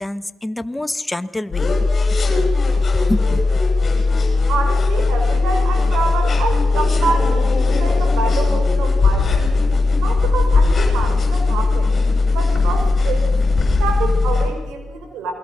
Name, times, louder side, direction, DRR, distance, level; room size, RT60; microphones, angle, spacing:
voice 1, 0.0-1.7 2.8-3.6, left 1 dB, 10° left, 12 dB, 1.1 m, -27 dB
sound 1, 1.5-14.5, left 3 dB, 40° left, 7.4 m, -17 dB
voice 2, 4.5-9.5 10.0-11.9 12.3-13.3 13.8-15.3, right 4 dB, 85° right, 5 dB, 5.3 m, -26 dB
28.5 x 21.0 x 6.3 m, 1.2 s
cardioid pair, 90°, 0 cm